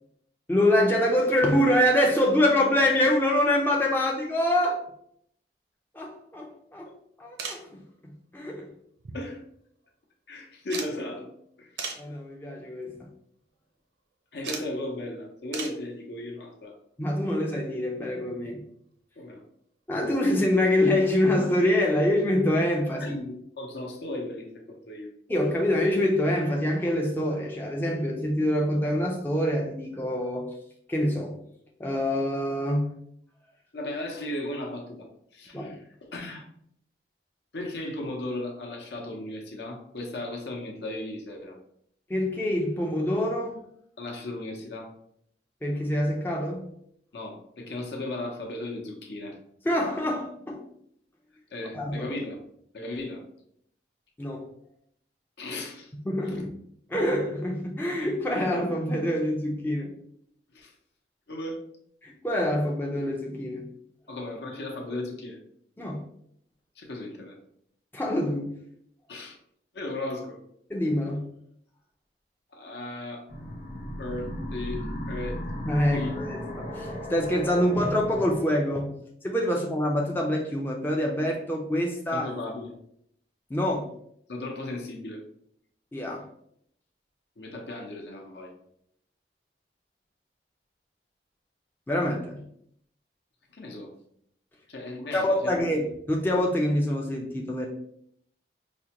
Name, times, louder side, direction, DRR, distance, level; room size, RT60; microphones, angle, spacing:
voice 1, 0.5-4.8 5.9-6.9 7.2-8.7 12.0-13.1 17.0-18.6 19.9-23.2 25.3-30.5 30.9-31.4 31.8-32.9 35.5-35.8 42.1-43.6 45.6-46.7 49.6-50.7 51.7-52.1 54.2-54.5 56.1-56.4 56.9-59.9 62.0-63.7 65.8-66.0 67.9-68.5 70.7-71.3 75.6-78.9 79.2-82.3 83.5-83.9 85.9-86.3 91.9-92.4 95.1-97.7, left 1 dB, 10° left, 0 dB, 0.3 m, -25 dB
sound 1, 7.4-7.7 9.0-9.6 9.8-9.9 10.7-11.0 11.8-12.1 12.8-13.0 14.4-14.7 15.5-15.8 17.5-17.6 19.0-19.1 19.3-19.4, right 5 dB, 85° right, 0.6 m, -36 dB
voice 2, 10.3-11.3 11.6-11.8 14.3-16.8 19.2-19.4 23.0-25.1 33.7-36.5 37.5-41.6 44.0-44.9 47.1-49.4 51.5-52.4 52.7-53.2 55.4-55.9 56.3-56.5 60.5-60.7 61.3-61.6 64.1-65.4 66.8-67.4 69.1-69.4 69.7-70.4 72.5-73.3 74.0-75.4 75.9-76.1 82.1-82.8 84.3-85.2 87.4-88.5 93.5-93.9 94.7-95.9, left 1 dB, 70° left, 1 dB, 0.7 m, -36 dB
sound 2, 73.3-78.4, equal, 40° left, 0.7 m, -36 dB
4.9 x 2.1 x 2.8 m, 0.69 s
head